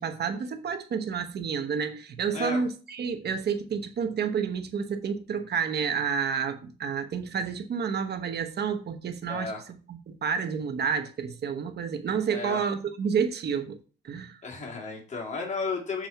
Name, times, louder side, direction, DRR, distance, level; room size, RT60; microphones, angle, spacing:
voice 1, 0.0-9.5 9.9-13.8 14.0-14.4, right 6 dB, 55° right, 1.1 m, -30 dB
voice 2, 9.3-9.6 12.3-12.6 14.4-16.1, left 4 dB, 35° left, 2.6 m, -33 dB
7.6 x 4.3 x 5.7 m
cardioid pair, 90°, 20 cm